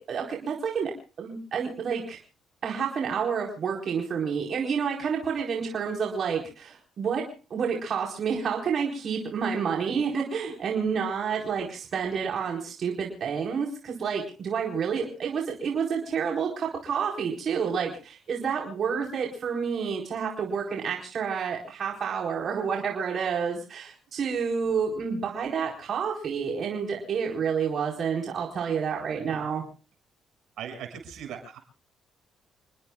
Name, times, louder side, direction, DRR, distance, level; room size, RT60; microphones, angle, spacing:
voice 1, 0.1-0.9 1.2-2.2 2.6-29.6, right 6 dB, 60° right, -1 dB, 4.4 m, -29 dB
voice 2, 9.6-10.1 30.6-31.6, right 8 dB, 80° right, 5 dB, 6.7 m, -40 dB
29.0 x 20.0 x 2.4 m, 0.37 s
cardioid pair, 90°, 0 cm